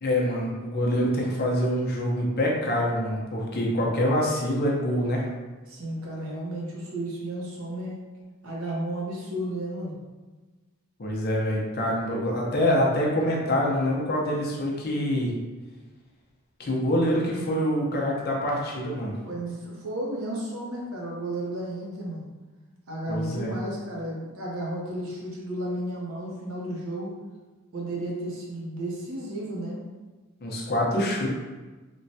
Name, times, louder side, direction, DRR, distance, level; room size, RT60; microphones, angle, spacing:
voice 1, 0.0-5.3 11.0-15.3 16.6-19.1 23.1-23.5 30.4-31.3, equal, 45° left, -2 dB, 0.6 m, -25 dB
voice 2, 5.7-8.0 8.4-10.0 19.2-22.3 22.9-27.1 27.7-29.8, right 1 dB, 65° right, -4 dB, 0.7 m, -33 dB
3.1 x 2.1 x 2.6 m, 1.3 s
head